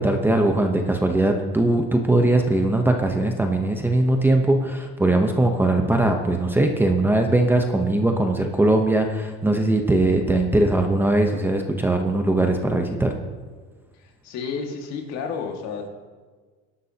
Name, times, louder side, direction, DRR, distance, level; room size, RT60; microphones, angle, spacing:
voice 1, 0.0-13.1, right 2 dB, 5° right, 3 dB, 0.8 m, -20 dB
voice 2, 14.0-15.9, left 5 dB, 60° left, 2 dB, 2.1 m, -31 dB
20.5 x 11.5 x 2.9 m, 1.4 s
cardioid pair, 145°, 29 cm